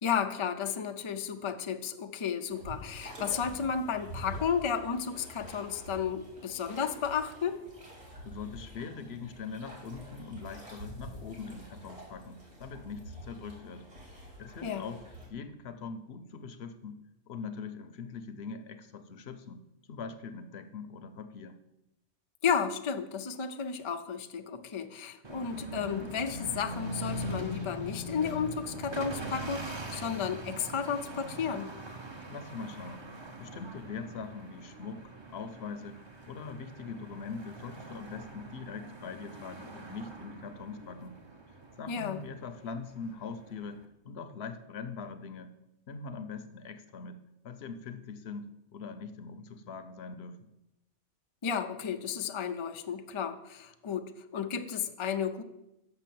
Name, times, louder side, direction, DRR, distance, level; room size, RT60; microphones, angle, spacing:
voice 1, 0.0-7.6 14.6-14.8 22.4-31.7 41.9-42.2 51.4-55.4, left 7 dB, 50° left, 7 dB, 0.3 m, -33 dB
sound 1, 2.5-15.3, equal, 60° right, 2.9 m, -47 dB
voice 2, 8.2-13.9 14.4-15.0 15.3-17.0 17.3-19.6 19.9-21.6 32.3-33.0 33.4-36.0 36.3-41.2 41.8-43.8 44.0-45.5 45.9-47.2 47.4-50.4, left 5 dB, 65° left, 9 dB, 0.9 m, -42 dB
sound 2, 25.2-43.9, right 1 dB, 25° right, 0.7 m, -42 dB
6.8 x 6.2 x 7.5 m, 0.91 s
omnidirectional pair, 1.2 m